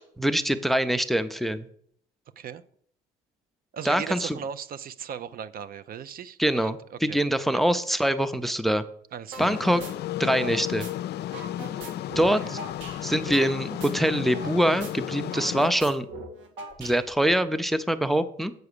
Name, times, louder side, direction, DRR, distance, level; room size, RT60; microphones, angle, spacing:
voice 1, 0.2-1.7 3.8-4.4 6.4-8.8 9.4-9.8 10.2-10.9 12.2-12.6 13.0-16.1 16.8-18.5, right 1 dB, ahead, 13 dB, 0.5 m, -24 dB
voice 2, 3.7-7.2 7.5-7.6 9.1-9.5 12.4-12.6, right 8 dB, 50° right, 15 dB, 0.5 m, -38 dB
sound 1, 9.3-9.5 9.8-10.9 11.2-14.5 14.8-14.9 15.2-17.3, right 3 dB, 90° right, 1.8 m, -40 dB
sound 2, 9.4-15.7, left 13 dB, 60° left, 0.4 m, -33 dB
8.0 x 4.8 x 6.7 m, 0.65 s
cardioid pair, 90°, 20 cm